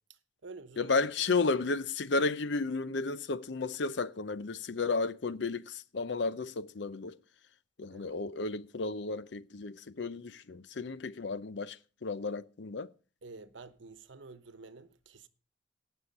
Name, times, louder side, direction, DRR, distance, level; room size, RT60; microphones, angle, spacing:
voice 1, 0.1-1.3 7.9-8.1 13.2-15.3, right 3 dB, 80° right, 1.0 m, -50 dB
voice 2, 0.8-7.2 7.8-12.9, left 3 dB, 70° left, 0.6 m, -33 dB
17.5 x 6.4 x 5.3 m
head